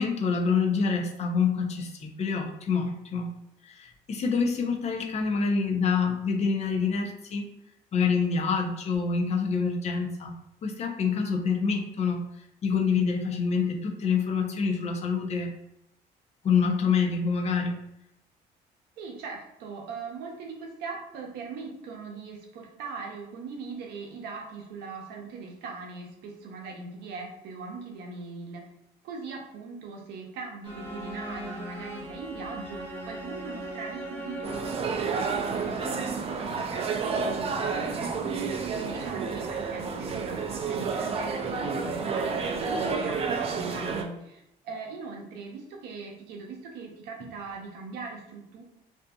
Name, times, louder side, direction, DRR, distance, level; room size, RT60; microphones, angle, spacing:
voice 1, 0.0-3.3 3.6-7.4 7.9-10.3 10.6-12.3 12.6-15.5 16.4-17.8, left 5 dB, 40° left, 2 dB, 0.5 m, -26 dB
voice 2, 19.0-28.7 29.0-48.6, right 4 dB, 80° right, 0 dB, 0.7 m, -40 dB
sound 1, 30.6-36.0, right 1 dB, 15° left, 0.8 m, -39 dB
sound 2, 34.4-44.0, right 5 dB, 35° right, 0.3 m, -30 dB
2.5 x 2.5 x 2.3 m, 0.81 s
cardioid pair, 110°, 17 cm